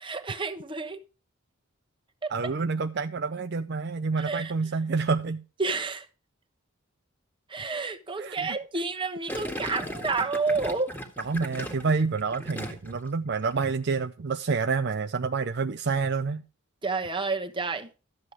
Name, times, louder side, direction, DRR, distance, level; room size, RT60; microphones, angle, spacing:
voice 1, 0.0-1.0 2.2-2.5 4.2-4.5 5.6-6.0 7.5-10.9 16.8-17.9, right 4 dB, 25° right, 1.2 m, -30 dB
voice 2, 2.3-5.4 8.2-8.6 11.3-16.4, right 4 dB, 50° right, 0.5 m, -28 dB
Gurgling, 9.3-13.1 13.4-13.7, equal, 10° left, 1.8 m, -37 dB
13.0 x 7.6 x 4.6 m
head